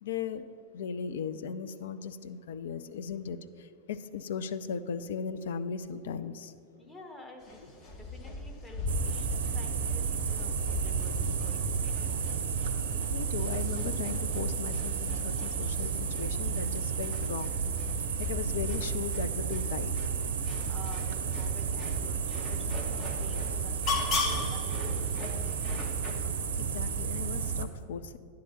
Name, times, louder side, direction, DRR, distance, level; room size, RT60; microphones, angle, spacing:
voice 1, 0.0-0.5 0.7-6.5 13.1-17.6 18.2-20.1 26.6-28.2, left 7 dB, 60° left, 11 dB, 0.4 m, -37 dB
voice 2, 6.8-12.4 20.7-25.8, left 1 dB, 10° left, 1 dB, 1.2 m, -50 dB
sound 1, 7.4-26.1, left 3 dB, 35° left, 1.1 m, -39 dB
sound 2, 8.9-27.6, right 6 dB, 60° right, 0.6 m, -32 dB
9.9 x 3.8 x 6.9 m, 2.4 s
figure-of-eight pair, 90°, 0 cm